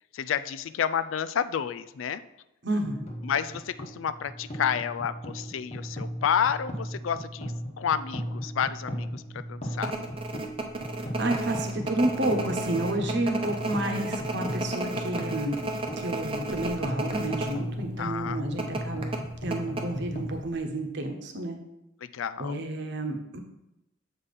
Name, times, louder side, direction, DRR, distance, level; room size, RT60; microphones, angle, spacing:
voice 1, 0.1-2.2 3.2-9.9 18.0-18.4 18.9-19.1 22.1-22.6, left 8 dB, 80° left, 14 dB, 0.4 m, -30 dB
voice 2, 2.6-3.1 11.2-15.6 16.0-19.1 19.4-21.6 22.4-23.4, right 1 dB, 60° right, 4 dB, 1.0 m, -30 dB
sound 1, 2.8-20.4, equal, 35° left, 1.2 m, -37 dB
sound 2, 9.8-17.6 17.8-17.9 18.6-20.3 20.5-20.6, right 2 dB, 30° right, 0.7 m, -33 dB
7.2 x 5.1 x 4.2 m, 0.92 s
head